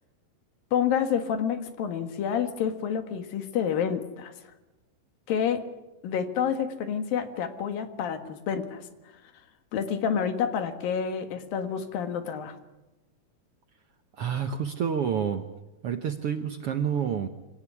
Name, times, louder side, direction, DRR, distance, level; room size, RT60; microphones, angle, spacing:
voice 1, 0.7-4.3 5.3-5.6 6.0-8.9 9.7-12.6, left 8 dB, 85° left, 9 dB, 3.5 m, -28 dB
voice 2, 14.2-15.5 15.8-17.3, right 7 dB, 65° right, 8 dB, 1.5 m, -28 dB
25.0 x 18.0 x 9.8 m, 1.0 s
omnidirectional pair, 4.0 m